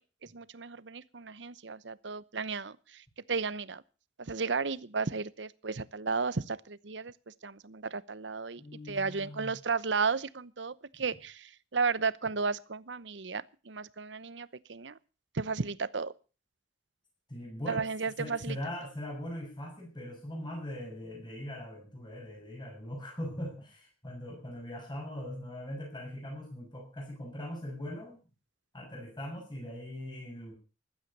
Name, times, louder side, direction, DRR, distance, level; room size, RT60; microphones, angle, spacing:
voice 1, 0.0-3.8 4.2-15.0 15.3-16.1 17.7-18.6, right 4 dB, 70° right, 17 dB, 0.9 m, -34 dB
voice 2, 8.6-9.6 17.3-28.2 28.7-30.5, left 1 dB, 25° left, 0 dB, 6.9 m, -41 dB
15.5 x 11.5 x 6.7 m, 0.35 s
head